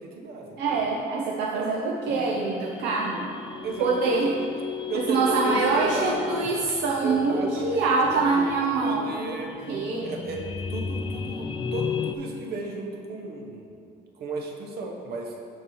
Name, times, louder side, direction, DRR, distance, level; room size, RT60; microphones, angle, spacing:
voice 1, 0.0-0.9 1.5-1.7 3.6-4.4 4.9-6.2 7.0-9.5 10.0-13.7 14.2-15.4, right 3 dB, 70° right, 2 dB, 1.1 m, -34 dB
voice 2, 0.6-3.3 3.8-4.4 4.9-9.4 9.7-10.1, right 3 dB, 85° right, -2 dB, 0.7 m, -25 dB
sound 1, 2.1-12.2, left 6 dB, 30° left, 0.4 m, -35 dB
6.5 x 6.5 x 4.6 m, 2.5 s
cardioid pair, 110°, 17 cm